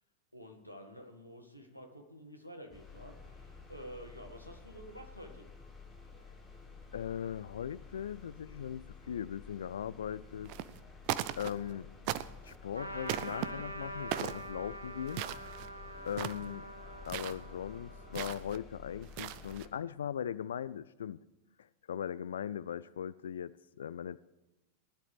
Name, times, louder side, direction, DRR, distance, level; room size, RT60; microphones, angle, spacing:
voice 1, 0.3-5.5, equal, 90° left, 3 dB, 1.7 m, -50 dB
sound 1, 2.7-19.7, left 4 dB, 15° left, 4.4 m, -52 dB
voice 2, 6.9-10.5 11.4-11.9 12.4-15.3 16.0-16.7 17.1-21.2 21.9-24.2, left 9 dB, 65° left, 17 dB, 0.3 m, -39 dB
sound 2, 10.4-10.8 11.0-11.7 12.1-12.6 13.1-13.5 14.1-14.5 15.1-15.7 16.1-16.5 17.0-17.4 18.1-18.6 19.0-19.7, right 14 dB, 45° right, 0.5 m, -38 dB
Trumpet, 12.7-18.6, right 1 dB, 80° right, 1.9 m, -45 dB
19.5 x 11.0 x 3.4 m, 1.0 s
figure-of-eight pair, 90°, 0 cm